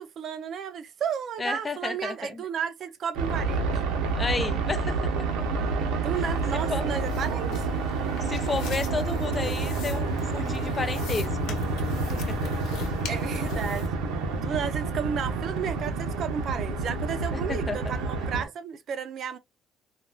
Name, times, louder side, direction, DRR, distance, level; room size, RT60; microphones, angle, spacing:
voice 1, 0.0-3.7 6.0-7.7 13.1-13.9 14.3-19.4, right 7 dB, 50° right, 0.5 m, -33 dB
voice 2, 1.4-2.4 4.2-5.3 6.7-6.9 8.2-11.6 12.1-12.5 17.3-17.9, left 4 dB, 20° left, 0.4 m, -32 dB
sound 1, 3.1-18.4, right 3 dB, 90° right, 0.7 m, -29 dB
sound 2, 6.1-13.9, left 6 dB, 75° left, 0.9 m, -41 dB
3.7 x 2.3 x 2.3 m
cardioid pair, 120°, 0 cm